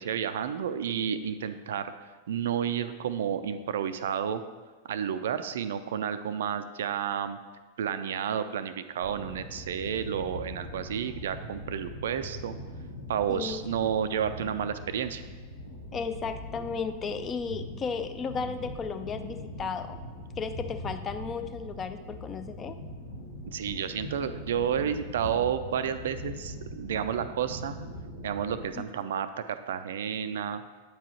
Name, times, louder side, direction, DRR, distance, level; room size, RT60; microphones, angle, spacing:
voice 1, 0.0-1.9 2.3-4.4 4.9-7.4 7.8-12.5 13.1-15.2 23.5-27.8 28.2-30.6, right 8 dB, 60° right, 11 dB, 0.3 m, -31 dB
sound 1, 9.0-28.7, left 1 dB, 80° left, 1.2 m, -41 dB
voice 2, 13.3-13.9 15.9-20.0 20.4-22.8 28.8-28.9, left 5 dB, 25° left, 8 dB, 0.4 m, -34 dB
8.7 x 4.6 x 2.9 m, 1.4 s
figure-of-eight pair, 90°, 0 cm